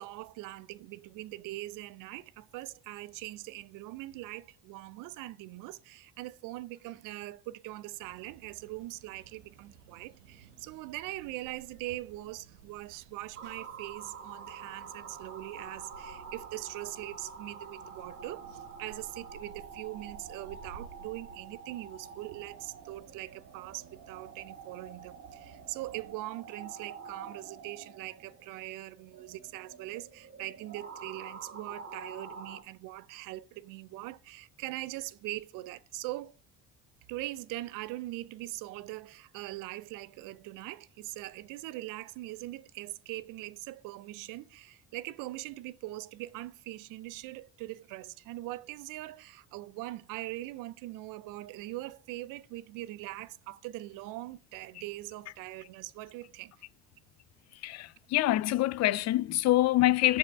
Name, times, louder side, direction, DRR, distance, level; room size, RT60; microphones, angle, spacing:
voice 1, 0.0-36.4 37.1-56.5, right 17 dB, 65° right, 0.5 m, -42 dB
sound 1, 8.0-26.1, right 7 dB, 90° right, 0.8 m, -56 dB
sound 2, 13.4-32.6, right 5 dB, 45° right, 1.5 m, -47 dB
voice 2, 57.5-60.2, left 15 dB, 50° left, 0.4 m, -26 dB
6.3 x 4.7 x 5.1 m
hypercardioid pair, 65°, 34 cm